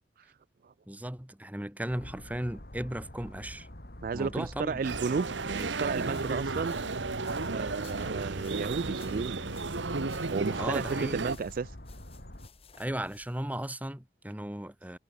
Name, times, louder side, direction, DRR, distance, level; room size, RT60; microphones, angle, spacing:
voice 1, 0.9-3.7 4.1-4.8 10.6-11.2 12.8-15.0, right 1 dB, 10° right, 1.2 m, -36 dB
sound 1, 1.9-12.5, left 1 dB, 55° left, 3.5 m, -47 dB
voice 2, 4.0-6.8 7.5-9.4 10.3-10.8 11.1-11.7, right 5 dB, 50° right, 0.4 m, -33 dB
sound 2, 4.8-13.4, left 3 dB, 35° left, 1.8 m, -56 dB
sound 3, 4.8-11.4, right 3 dB, 90° right, 1.2 m, -33 dB
head